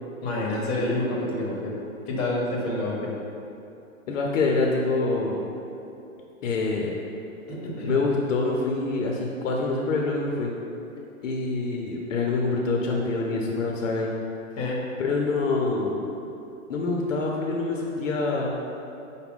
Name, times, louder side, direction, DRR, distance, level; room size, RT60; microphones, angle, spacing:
voice 1, 0.2-1.7 2.1-3.0 7.5-8.0 14.6-14.8, left 2 dB, 30° left, -3 dB, 0.8 m, -28 dB
voice 2, 4.1-5.4 6.4-7.0 7.9-10.5 11.2-14.1 15.0-16.0 16.7-18.5, left 3 dB, 60° left, -1 dB, 0.6 m, -25 dB
5.8 x 2.2 x 3.5 m, 2.8 s
hypercardioid pair, 145°, 42 cm